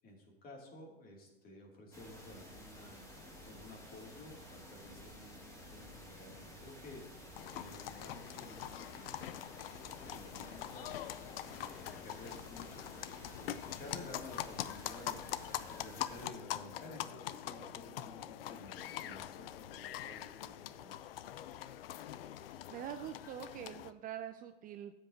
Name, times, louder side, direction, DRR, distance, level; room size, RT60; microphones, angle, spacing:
voice 1, 0.0-3.0 3.4-7.2 7.5-9.4 9.9-11.2 11.5-15.2 15.7-21.0, left 1 dB, 30° left, 0 dB, 2.8 m, -53 dB
sound 1, 1.9-16.3, left 1 dB, 10° left, 2.1 m, -53 dB
sound 2, 7.4-23.9, left 12 dB, 70° left, 0.6 m, -44 dB
voice 2, 22.7-24.9, right 10 dB, 30° right, 9 dB, 0.5 m, -44 dB
12.5 x 8.0 x 2.8 m, 1.1 s
hypercardioid pair, 110°, 30 cm